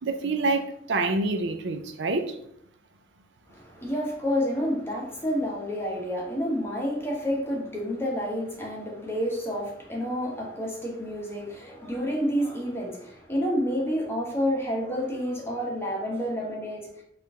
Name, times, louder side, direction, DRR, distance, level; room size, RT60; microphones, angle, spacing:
voice 1, 0.0-2.4, right 3 dB, 75° right, 7 dB, 0.5 m, -27 dB
voice 2, 3.5-17.0, equal, 15° left, -2 dB, 1.0 m, -29 dB
4.4 x 2.5 x 3.6 m, 0.70 s
head